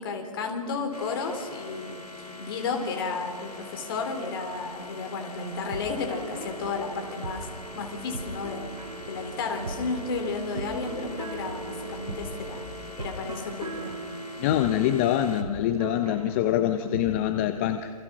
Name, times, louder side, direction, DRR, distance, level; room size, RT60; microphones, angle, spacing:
voice 1, 0.0-7.5 7.8-8.6 9.1-12.6 13.0-13.9, left 4 dB, 35° left, 4 dB, 4.0 m, -32 dB
sound 1, 0.9-15.4, left 3 dB, 85° left, 2.8 m, -44 dB
sound 2, 4.6-12.7, right 4 dB, 15° right, 2.7 m, -44 dB
sound 3, 5.5-17.1, right 3 dB, 80° right, 5.6 m, -40 dB
voice 2, 14.4-17.9, left 11 dB, 20° left, 9 dB, 0.7 m, -25 dB
28.0 x 27.0 x 6.2 m, 2.6 s
hypercardioid pair, 150°, 20 cm